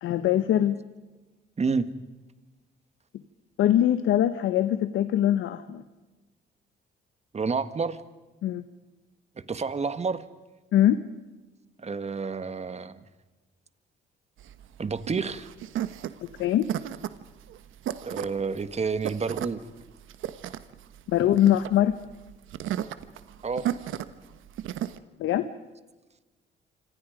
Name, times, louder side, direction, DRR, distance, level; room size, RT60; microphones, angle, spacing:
voice 1, 0.0-0.8 3.6-5.8 8.4-8.6 10.7-11.0 16.4-16.7 21.1-22.0 25.2-25.5, left 11 dB, 85° left, 11 dB, 1.2 m, -22 dB
voice 2, 7.3-8.0 9.4-10.2 11.8-13.0 14.8-15.5 18.0-19.6 23.4-23.7, right 5 dB, 35° right, 12 dB, 1.7 m, -29 dB
sound 1, 14.4-25.0, right 11 dB, 80° right, 1.2 m, -35 dB
27.0 x 26.0 x 5.2 m, 1.2 s
cardioid pair, 90°, 20 cm